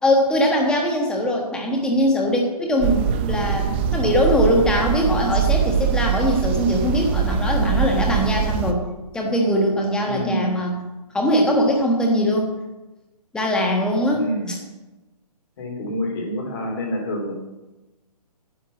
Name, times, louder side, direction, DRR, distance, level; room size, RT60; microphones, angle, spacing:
voice 1, 0.0-8.8 9.1-10.8 11.1-12.5 13.3-14.6, equal, 5° left, 0 dB, 1.4 m, -21 dB
sound 1, 2.8-8.7, right 7 dB, 15° right, 0.5 m, -22 dB
voice 2, 10.1-10.6 14.1-14.6 15.6-17.3, equal, 35° left, 1 dB, 3.3 m, -27 dB
10.0 x 8.1 x 7.1 m, 1.1 s
hypercardioid pair, 160°, 20 cm